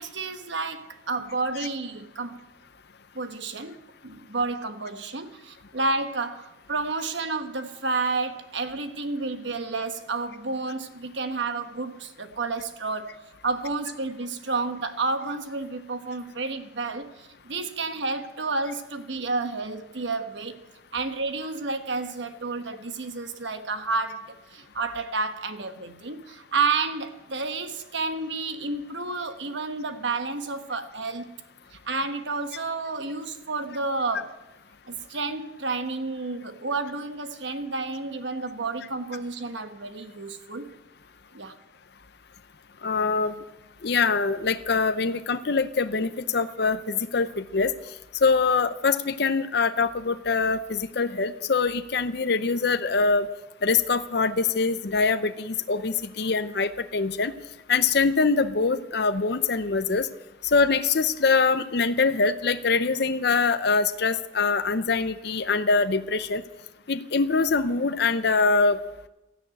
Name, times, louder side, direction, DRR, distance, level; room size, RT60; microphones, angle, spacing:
voice 1, 0.0-2.5 3.1-3.8 4.0-20.6 20.9-31.3 31.7-34.4 34.9-40.8 41.3-41.6, right 3 dB, 70° right, 1.2 m, -30 dB
voice 2, 42.8-43.3 43.8-47.7 48.2-53.3 53.6-57.3 57.7-60.1 60.5-66.4 66.9-68.8, left 4 dB, 55° left, 0.6 m, -24 dB
13.0 x 10.5 x 8.9 m
head